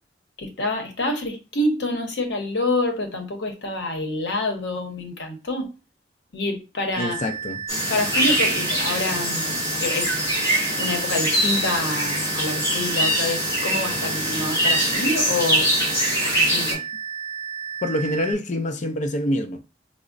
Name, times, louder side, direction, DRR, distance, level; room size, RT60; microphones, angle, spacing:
voice 1, 0.4-5.7 6.3-7.2 7.9-10.2 10.8-15.7 16.4-16.8, left 2 dB, 85° left, 0.8 m, -27 dB
sound 1, 6.9-18.3, right 7 dB, 25° right, 0.4 m, -33 dB
voice 2, 7.0-7.6 17.8-19.6, left 1 dB, 45° left, 0.5 m, -26 dB
sound 2, 7.7-16.7, equal, 20° left, 1.8 m, -23 dB
4.8 x 2.0 x 2.5 m
head